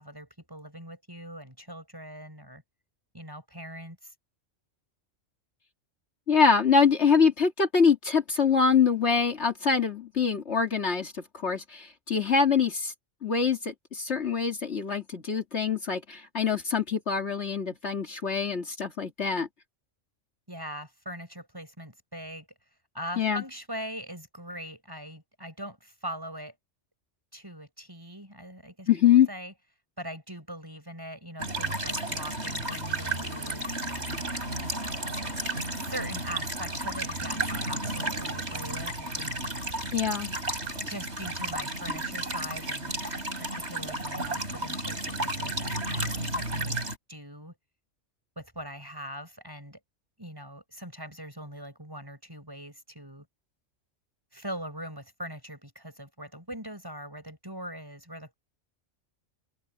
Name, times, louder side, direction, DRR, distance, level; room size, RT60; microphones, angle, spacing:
voice 1, 0.0-2.6 3.1-4.1 20.5-22.5 22.9-26.5 27.3-28.9 29.3-29.5 30.0-34.7 35.8-39.3 40.9-43.0 43.3-46.8 47.1-47.6 48.3-49.8 50.2-53.2 54.3-58.3, equal, 15° right, 6.7 m, -41 dB
voice 2, 6.3-12.9 13.2-19.5 23.2-23.4 28.9-29.3 39.9-40.3, left 6 dB, 60° left, 2.5 m, -24 dB
sound 1, 31.4-47.0, right 2 dB, 60° right, 6.8 m, -32 dB
omnidirectional pair, 1.3 m